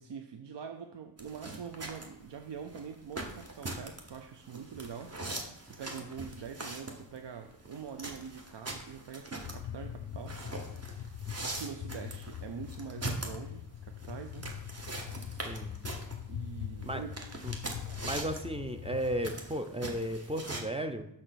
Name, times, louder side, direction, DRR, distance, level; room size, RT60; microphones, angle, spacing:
voice 1, 0.0-5.2 5.6-10.4 11.1-14.5 16.3-17.1 17.8-18.0, right 7 dB, 65° right, 6 dB, 0.7 m, -44 dB
sound 1, 1.2-20.6, right 2 dB, 35° right, 1.3 m, -42 dB
sound 2, 9.4-19.2, left 9 dB, 55° left, 0.5 m, -42 dB
voice 2, 15.4-15.7 16.8-17.0 17.4-17.5 18.0-21.1, right 1 dB, 15° right, 8 dB, 0.6 m, -34 dB
6.4 x 5.7 x 6.3 m, 0.79 s
wide cardioid pair, 100°, 46 cm